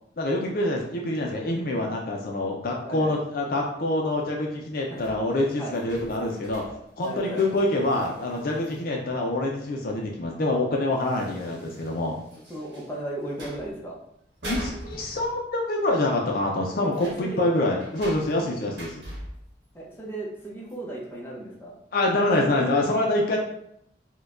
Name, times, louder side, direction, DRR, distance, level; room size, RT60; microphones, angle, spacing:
voice 1, 0.2-6.6 7.0-12.2 14.5-19.0 21.9-23.4, left 2 dB, 50° left, 0 dB, 0.4 m, -26 dB
voice 2, 2.8-3.2 4.9-5.2 5.6-5.8 6.7-6.8 7.0-7.5 12.5-14.0 16.8-17.5 19.7-21.8 22.3-22.6, right 1 dB, 10° left, -4 dB, 0.7 m, -35 dB
sound 1, 5.0-8.9 9.9-10.0 10.3-10.4 11.0-13.0 13.3-13.8 14.2-15.7 15.9-16.1 16.3-19.6 20.7-20.8, equal, 85° right, 1.0 m, -42 dB
4.3 x 2.2 x 2.4 m, 0.74 s
head